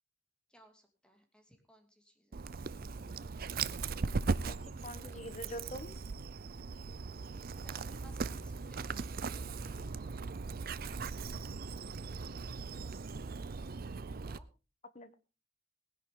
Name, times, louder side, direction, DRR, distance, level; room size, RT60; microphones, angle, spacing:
voice 1, 0.5-2.5 7.5-10.2 14.3-14.5, equal, 5° left, 4 dB, 2.6 m, -62 dB
Dog, 2.3-14.4, right 4 dB, 50° right, 0.6 m, -39 dB
voice 2, 4.5-6.0 14.9-15.1, equal, 40° left, 13 dB, 1.2 m, -45 dB
18.5 x 10.5 x 3.8 m, 0.31 s
head